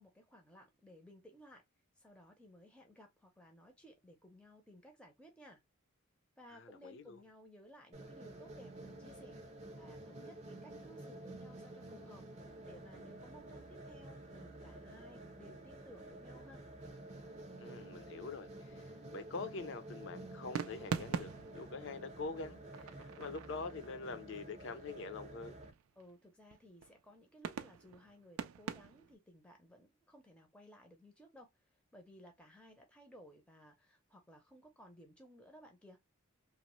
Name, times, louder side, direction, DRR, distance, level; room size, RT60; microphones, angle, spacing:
voice 1, 0.0-1.6 2.0-5.6 6.4-9.4 9.7-12.2 12.6-16.6 26.0-36.0, equal, 5° left, 0.5 m, -59 dB
voice 2, 6.5-7.2 17.6-25.6, left 4 dB, 60° left, 0.5 m, -45 dB
sound 1, 7.9-25.7, right 1 dB, 30° right, 0.7 m, -51 dB
sound 2, 18.4-19.1 20.5-23.8 25.6-26.1 26.5-27.0 27.4-29.1, right 7 dB, 90° right, 0.4 m, -43 dB
3.0 x 2.0 x 2.9 m
head